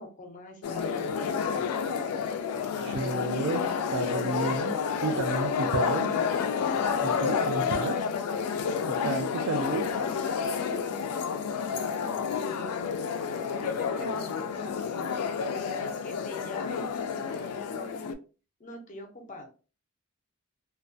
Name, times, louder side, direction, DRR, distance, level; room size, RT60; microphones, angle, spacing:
voice 1, 0.0-1.3 10.4-11.2 12.0-12.9 13.2-15.0 15.5-18.1 18.6-19.5, left 2 dB, 35° left, 4 dB, 0.6 m, -43 dB
sound 1, 0.6-18.1, left 6 dB, 85° left, 0.3 m, -30 dB
voice 2, 2.8-3.7 3.9-6.2 6.6-6.7 7.0-8.0 8.9-9.9, right 3 dB, 60° right, 3 dB, 0.4 m, -31 dB
2.3 x 2.1 x 2.5 m, 0.35 s
head